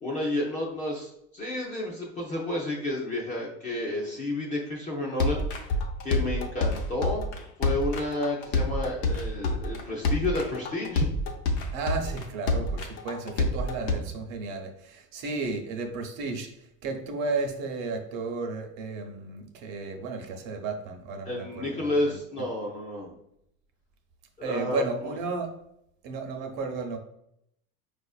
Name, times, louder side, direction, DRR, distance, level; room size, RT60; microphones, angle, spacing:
voice 1, 0.0-5.5 6.0-11.1 21.2-23.1 24.4-25.1, left 2 dB, 20° left, -3 dB, 0.4 m, -31 dB
sound 1, 5.2-13.9, left 2 dB, 65° left, 0.7 m, -27 dB
voice 2, 11.7-22.1 24.4-25.6 26.0-27.0, right 3 dB, 60° right, 5 dB, 0.7 m, -33 dB
4.9 x 2.5 x 2.3 m, 0.77 s
supercardioid pair, 150°, 43 cm